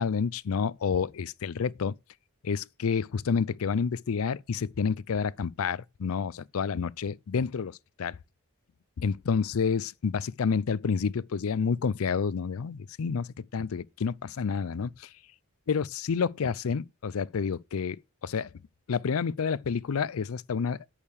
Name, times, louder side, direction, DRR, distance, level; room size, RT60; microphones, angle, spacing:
voice 1, 0.0-1.9 2.4-8.2 9.0-15.1 15.7-18.0 18.2-18.5 18.9-20.8, left 6 dB, 80° left, 0.5 m, -29 dB
8.7 x 6.5 x 6.5 m
head